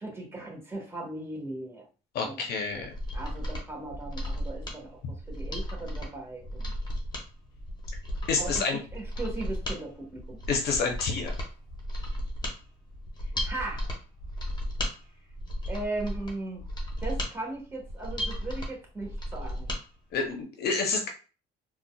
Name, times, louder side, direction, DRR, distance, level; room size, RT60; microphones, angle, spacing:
voice 1, 0.0-1.9 2.2-2.9 3.1-5.0 5.3-6.6 8.4-8.6 8.9-10.4 13.4-13.9 15.7-16.6 17.0-19.7, right 2 dB, 15° right, -1 dB, 1.3 m, -38 dB
voice 2, 2.1-2.9 8.3-8.8 10.5-11.3 20.1-21.1, left 4 dB, 70° left, 3 dB, 0.7 m, -28 dB
Mechanisms, 2.8-19.8 20.2-20.3, equal, 25° left, 1.0 m, -35 dB
3.8 x 2.3 x 2.3 m, 0.35 s
cardioid pair, 110°, 17 cm